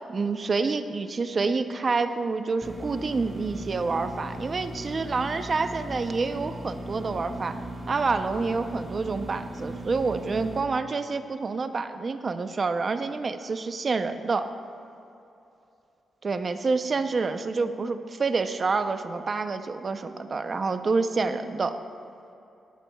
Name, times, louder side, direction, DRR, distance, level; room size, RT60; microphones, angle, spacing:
voice 1, 0.1-7.6 7.9-14.5 16.2-21.7, right 4 dB, 40° right, 9 dB, 0.6 m, -28 dB
sound 1, 2.6-10.6, right 1 dB, 20° right, 1.5 m, -38 dB
18.5 x 12.5 x 2.3 m, 2.8 s
cardioid pair, 120°, 0 cm